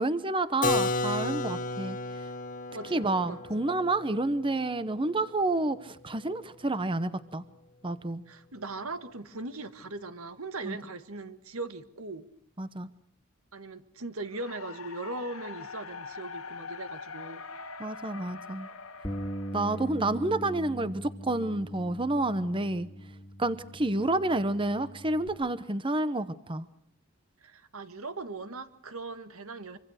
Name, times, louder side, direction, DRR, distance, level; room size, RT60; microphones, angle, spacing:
voice 1, 0.0-2.0 2.9-7.4 7.8-8.2 10.6-10.8 12.6-12.9 17.8-18.7 19.5-22.9 23.4-26.6, right 2 dB, 25° right, 0.9 m, -29 dB
Keyboard (musical), 0.6-6.2, left 3 dB, 40° left, 1.9 m, -33 dB
voice 2, 2.7-3.7 8.3-12.3 13.5-17.4 27.4-29.8, right 3 dB, 80° right, 1.9 m, -39 dB
sound 1, 14.3-20.5, left 4 dB, 80° left, 2.4 m, -43 dB
Bass guitar, 19.0-25.3, equal, 15° left, 2.2 m, -41 dB
26.0 x 25.5 x 6.5 m
head